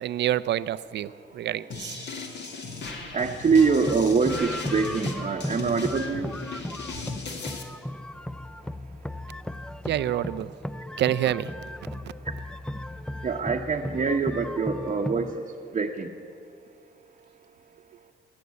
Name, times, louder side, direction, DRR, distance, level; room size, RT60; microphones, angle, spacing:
voice 1, 0.0-2.0 9.9-10.5 11.0-11.5, right 12 dB, 60° right, 15 dB, 0.5 m, -27 dB
voice 2, 1.1-6.3 13.2-15.4 15.7-16.1, right 5 dB, 35° right, 0 dB, 0.9 m, -26 dB
sound 1, 1.7-7.6, left 4 dB, 60° left, 2.0 m, -37 dB
sound 2, 3.6-15.4, left 1 dB, 5° left, 0.3 m, -36 dB
18.5 x 6.8 x 9.4 m, 2.4 s
cardioid pair, 90°, 20 cm